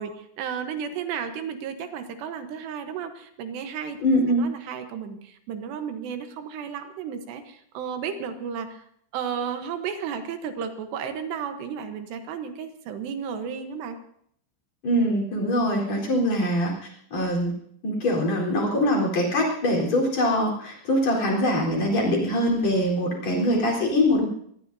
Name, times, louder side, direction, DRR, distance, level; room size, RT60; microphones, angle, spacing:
voice 1, 0.0-4.0 4.4-8.8 9.1-14.0 23.3-23.6, right 7 dB, 70° right, 7 dB, 2.9 m, -33 dB
voice 2, 4.0-4.5 14.8-16.7 17.1-17.5 17.8-24.2, left 1 dB, 35° left, -2 dB, 4.7 m, -23 dB
26.0 x 19.0 x 2.7 m, 0.68 s
omnidirectional pair, 5.8 m